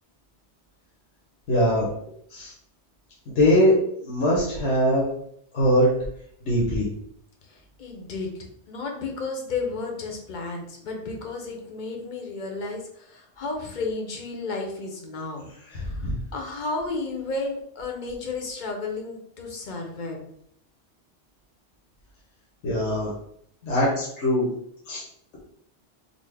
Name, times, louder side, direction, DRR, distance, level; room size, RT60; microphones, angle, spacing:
voice 1, 1.5-1.9 2.3-2.5 3.3-3.7 4.0-5.1 5.5-5.9 6.4-6.9 15.7-16.2 22.6-23.1 23.6-24.5 24.9-25.0, equal, 80° left, -6 dB, 1.2 m, -21 dB
voice 2, 7.5-8.3 8.7-15.4 15.9-16.1 16.3-20.2, left 3 dB, 50° left, 1 dB, 0.7 m, -32 dB
4.1 x 2.0 x 3.3 m, 0.70 s
omnidirectional pair, 1.2 m